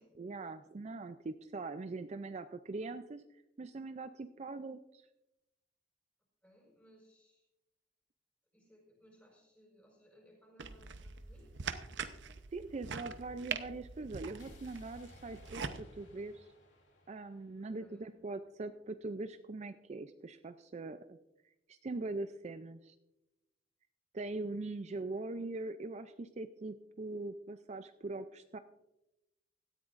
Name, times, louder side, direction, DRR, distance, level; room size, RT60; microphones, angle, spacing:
voice 1, 0.2-3.2 3.6-5.1 12.5-16.5 17.1-21.2 21.7-22.9 24.1-28.6, right 3 dB, 40° right, 10 dB, 0.4 m, -42 dB
voice 2, 6.4-7.4 8.5-11.7 17.5-18.1, equal, 10° left, -1 dB, 4.9 m, -63 dB
sound 1, 10.6-15.8, right 5 dB, 85° right, 0.8 m, -43 dB
sound 2, 14.4-18.4, left 2 dB, 85° left, 2.7 m, -62 dB
17.5 x 13.5 x 2.5 m, 0.94 s
head